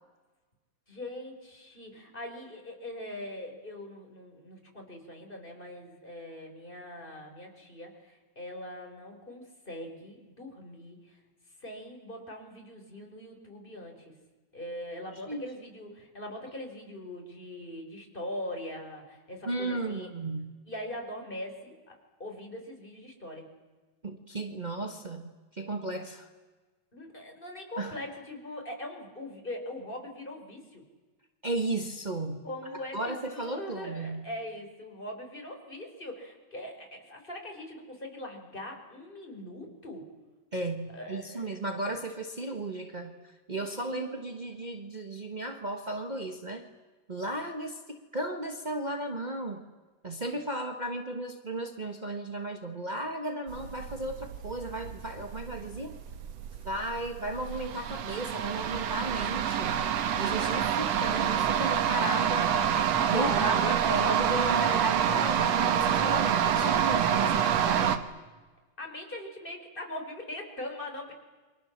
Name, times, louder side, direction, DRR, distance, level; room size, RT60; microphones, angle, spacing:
voice 1, 0.9-11.2 11.6-14.1 14.5-20.1 20.7-23.5 26.9-30.8 32.4-40.1 40.9-41.6 43.9-44.2 63.1-64.0 67.2-67.4 68.8-71.1, left 1 dB, 15° left, 2 dB, 4.6 m, -41 dB
voice 2, 19.4-20.6 24.0-26.3 27.8-27.9 31.4-32.4 32.9-34.2 40.5-46.6 47.1-49.6 50.0-56.0 56.6-59.9 60.2-62.5 63.0-68.0, right 2 dB, 45° right, 4 dB, 0.5 m, -35 dB
sound 1, 53.5-68.0, right 8 dB, 65° right, 2.4 m, -27 dB
29.5 x 24.0 x 7.4 m, 1.3 s
omnidirectional pair, 3.3 m